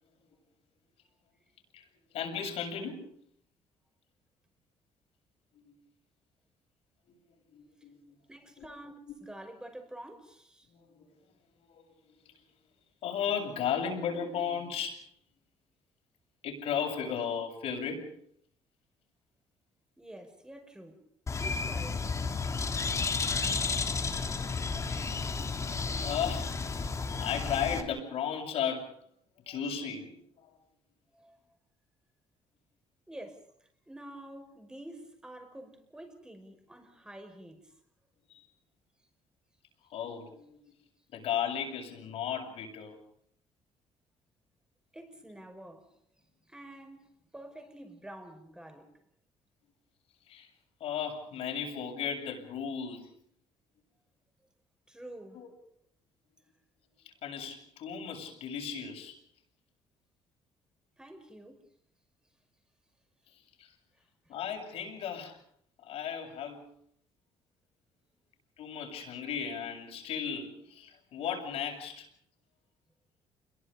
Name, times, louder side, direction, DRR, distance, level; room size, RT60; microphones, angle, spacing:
voice 1, 2.1-3.1 5.7-5.8 7.5-8.2 8.6-8.7 10.7-11.0 11.7-11.8 12.3-12.4 13.0-15.0 16.4-18.2 24.9-25.3 25.8-26.7 27.1-29.0 29.5-30.5 38.3-38.5 39.9-40.6 41.1-43.0 50.3-50.5 50.8-53.1 55.3-55.5 57.2-59.2 63.3-63.7 64.3-65.4 65.8-66.7 68.6-72.1, left 7 dB, 75° left, 7.6 m, -35 dB
voice 2, 8.3-10.7 20.0-21.0 21.4-22.0 31.1-31.4 33.1-33.4 33.9-37.6 44.9-45.9 46.5-47.1 47.3-48.9 54.9-55.4 61.0-61.6, right 1 dB, 5° right, 5.9 m, -48 dB
Bird, 21.3-27.8, left 4 dB, 30° left, 3.2 m, -32 dB
29.0 x 22.5 x 5.3 m
cardioid pair, 110°, 10 cm